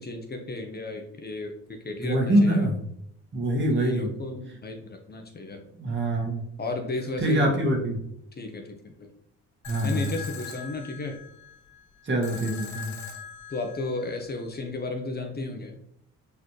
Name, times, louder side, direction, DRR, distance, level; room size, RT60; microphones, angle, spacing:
voice 1, 0.0-1.5 1.8-2.7 3.7-5.6 6.6-7.5 8.4-9.1 9.8-11.2 13.5-15.8, left 2 dB, 30° left, 3 dB, 1.2 m, -33 dB
voice 2, 2.0-2.7 3.3-4.1 5.8-6.4 7.2-8.0 9.7-10.0 12.0-12.9, right 1 dB, 40° right, 0 dB, 2.2 m, -24 dB
sound 1, 9.6-14.7, left 6 dB, 70° left, 1.4 m, -42 dB
7.0 x 4.0 x 3.3 m, 0.73 s
cardioid pair, 90°, 30 cm